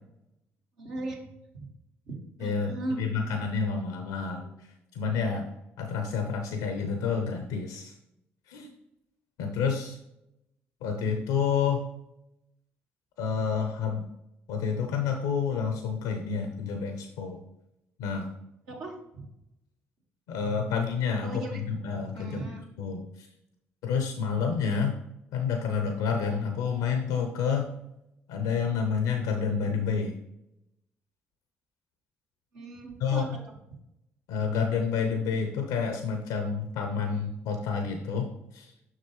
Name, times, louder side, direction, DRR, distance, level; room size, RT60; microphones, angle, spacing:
voice 1, 0.8-1.2 1.5-1.7 2.1-3.1 18.7-19.3 21.2-21.6 22.1-22.6 32.5-33.6, right 2 dB, 75° right, -2 dB, 1.9 m, -37 dB
voice 2, 2.4-4.7 4.9-5.5 5.8-7.9 8.5-8.7 9.4-10.0 10.8-11.8 13.2-14.0 14.5-17.4 18.0-18.3 20.3-22.4 22.8-23.3 23.8-24.9 25.3-27.7 28.3-30.1 33.0-33.4 34.3-38.7, left 6 dB, 75° left, 5 dB, 0.7 m, -29 dB
7.4 x 6.1 x 3.1 m, 0.86 s
hypercardioid pair, 45°, 7 cm